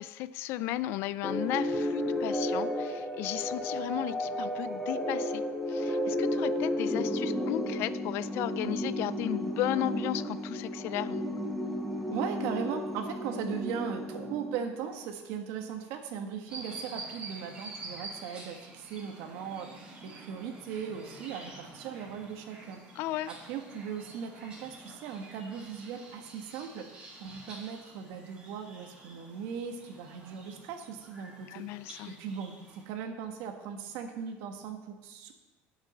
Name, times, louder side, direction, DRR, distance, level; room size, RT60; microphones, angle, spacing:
voice 1, 0.0-11.2 23.0-23.3 31.5-32.2, left 14 dB, 60° left, 17 dB, 0.4 m, -35 dB
sound 1, 1.2-15.0, left 1 dB, ahead, 1.0 m, -33 dB
voice 2, 12.1-22.8 23.3-31.6 32.1-35.3, right 7 dB, 70° right, 5 dB, 1.4 m, -38 dB
sound 2, 16.5-32.8, right 2 dB, 20° right, 2.6 m, -48 dB
9.1 x 6.5 x 6.9 m, 1.1 s
cardioid pair, 155°, 4 cm